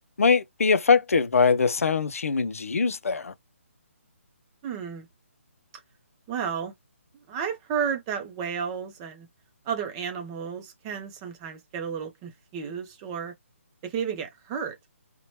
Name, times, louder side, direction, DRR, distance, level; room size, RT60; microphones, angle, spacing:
voice 1, 0.2-3.3, left 5 dB, 85° left, 0.4 m, -22 dB
voice 2, 4.6-5.1 6.3-6.7 7.1-9.3 9.6-13.3 13.8-14.7, right 7 dB, 20° right, 0.5 m, -32 dB
2.8 x 2.1 x 2.9 m
hypercardioid pair, 155°, 8 cm